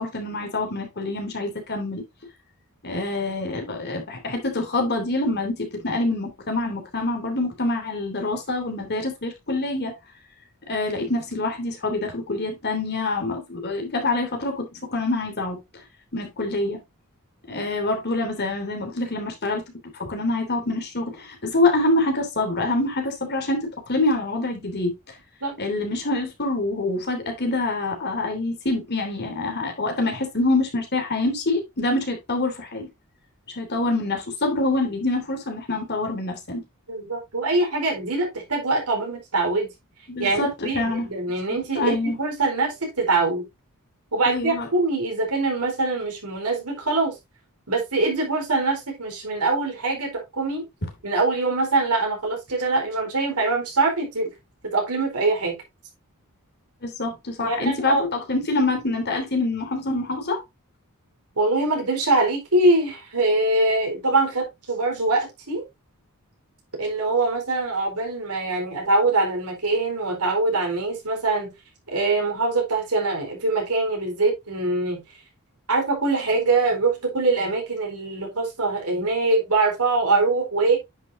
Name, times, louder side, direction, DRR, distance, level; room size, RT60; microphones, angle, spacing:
voice 1, 0.0-2.0 2.8-9.9 10.7-15.6 16.1-16.8 17.5-19.6 19.9-24.9 25.6-32.9 33.6-36.6 40.1-41.1 41.7-42.2 44.3-44.7 56.8-60.4, left 2 dB, 50° left, 3.0 m, -26 dB
voice 2, 36.9-39.7 40.2-43.5 44.1-47.1 47.7-50.6 51.0-54.3 54.6-55.6 57.4-58.0 61.4-65.6 66.8-71.5 71.9-75.0 75.7-80.8, right 3 dB, 85° right, 4.3 m, -23 dB
9.7 x 6.3 x 2.7 m
head